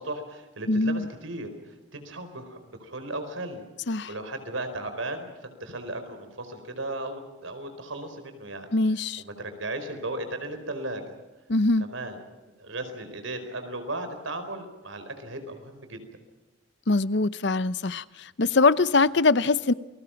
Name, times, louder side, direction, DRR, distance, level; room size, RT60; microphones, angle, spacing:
voice 1, 0.0-3.6 4.1-8.7 9.2-11.1 11.8-12.2 12.6-16.0, right 2 dB, 85° right, 4.7 m, -36 dB
voice 2, 0.7-1.1 3.9-4.1 8.7-9.2 11.5-11.9 16.9-19.7, left 3 dB, 60° left, 0.7 m, -23 dB
29.0 x 21.0 x 5.9 m
head